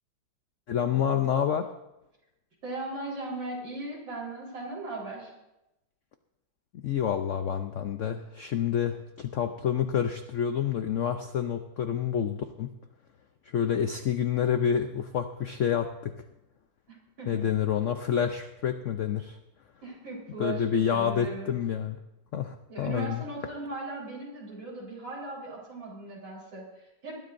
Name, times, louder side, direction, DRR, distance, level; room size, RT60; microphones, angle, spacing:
voice 1, 0.7-1.7 6.7-12.7 13.5-16.1 17.3-19.4 20.4-22.0 22.3-23.2, left 8 dB, 80° left, 7 dB, 0.6 m, -28 dB
voice 2, 2.6-5.3 16.9-17.4 19.8-21.5 22.7-27.2, right 2 dB, 75° right, -4 dB, 4.9 m, -38 dB
20.5 x 13.0 x 2.6 m, 0.93 s
omnidirectional pair, 2.1 m